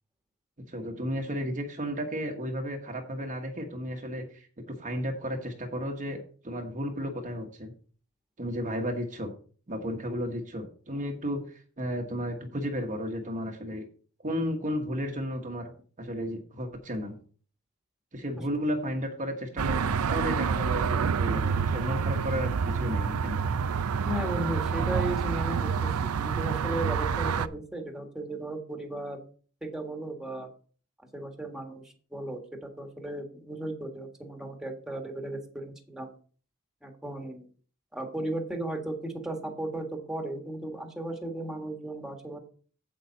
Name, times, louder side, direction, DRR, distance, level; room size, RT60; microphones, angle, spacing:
voice 1, 0.7-7.7 8.4-9.3 9.7-13.8 14.2-15.7 16.0-17.2 18.1-23.4, equal, 35° right, 2 dB, 1.2 m, -33 dB
sound 1, 19.6-27.5, right 6 dB, 75° right, 0.5 m, -28 dB
voice 2, 24.0-29.2 29.6-30.5 31.1-31.8 32.1-36.1 36.8-37.5 37.9-42.4, right 1 dB, 5° right, 3 dB, 1.7 m, -35 dB
8.5 x 8.1 x 4.1 m, 0.42 s
head